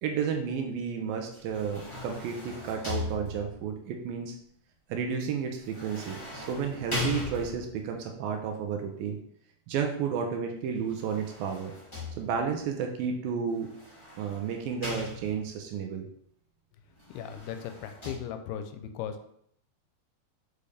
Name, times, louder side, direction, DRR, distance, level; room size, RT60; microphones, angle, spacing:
voice 1, 0.0-4.4 4.9-9.2 9.7-11.7 12.2-13.7 14.2-16.1, right 6 dB, 75° right, 3 dB, 2.2 m, -32 dB
sound 1, 1.3-3.7 5.6-7.9 10.7-12.6 13.6-15.6 16.9-18.1, left 3 dB, 20° left, 0.7 m, -39 dB
voice 2, 17.1-19.3, left 9 dB, 85° left, 8 dB, 2.5 m, -37 dB
6.9 x 5.1 x 3.4 m, 0.70 s
omnidirectional pair, 4.5 m